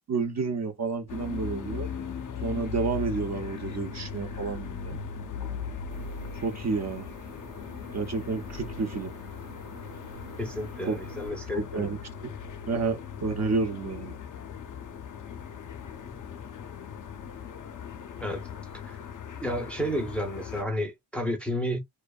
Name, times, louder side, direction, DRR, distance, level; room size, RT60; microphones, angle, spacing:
voice 1, 0.1-1.9 2.4-5.0 6.4-7.1 7.9-9.1 10.9-11.0 11.5-12.3 12.7-14.2, right 4 dB, 40° right, 0.6 m, -30 dB
sound 1, 1.1-20.6, left 7 dB, 45° left, 0.5 m, -39 dB
sound 2, 5.9-11.3, right 6 dB, 55° right, 1.0 m, -49 dB
voice 2, 10.4-11.9 18.2-18.5 18.8-19.0 19.4-21.8, equal, 5° left, 0.6 m, -31 dB
2.5 x 2.1 x 2.3 m
wide cardioid pair, 135°, 43 cm